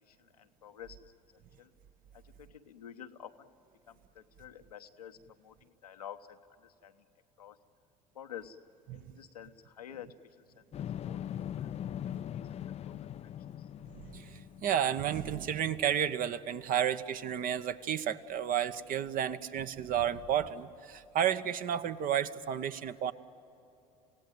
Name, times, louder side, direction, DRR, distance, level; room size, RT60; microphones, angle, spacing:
voice 1, 0.0-1.7 2.1-3.5 3.9-7.0 7.4-7.6 8.1-8.6 8.9-10.2 10.5-11.7 12.0-13.3 13.6-13.7, left 9 dB, 85° left, 6 dB, 1.0 m, -50 dB
sound 1, 10.7-14.9, left 10 dB, 35° left, 0.5 m, -40 dB
voice 2, 13.9-23.1, right 9 dB, 45° right, 11 dB, 1.0 m, -32 dB
28.5 x 17.0 x 9.2 m, 3.0 s
hypercardioid pair, 65°, 19 cm